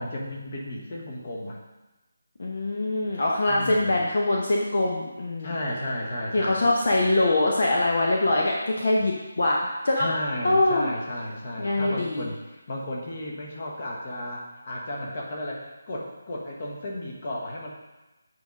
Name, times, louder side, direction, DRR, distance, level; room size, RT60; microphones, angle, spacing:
voice 1, 0.0-1.6 3.5-4.1 5.4-6.9 10.0-17.7, left 1 dB, 30° left, -2 dB, 1.3 m, -34 dB
voice 2, 2.4-5.5 6.3-10.1 10.4-10.9 11.6-12.3, left 2 dB, 45° left, -2 dB, 0.9 m, -23 dB
8.1 x 4.8 x 5.3 m, 1.1 s
figure-of-eight pair, 180°, 0 cm